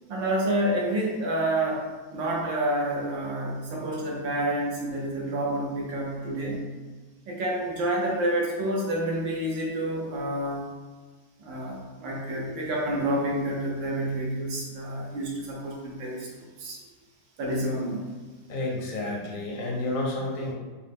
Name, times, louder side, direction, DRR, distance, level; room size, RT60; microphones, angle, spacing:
voice 1, 0.1-1.8 2.1-6.6 7.3-10.7 11.4-16.3 16.6-16.8 17.4-18.0, right 1 dB, 75° right, -2 dB, 1.6 m, -28 dB
voice 2, 18.5-20.5, left 2 dB, 50° left, -3 dB, 0.6 m, -30 dB
5.3 x 2.2 x 3.5 m, 1.4 s
omnidirectional pair, 2.1 m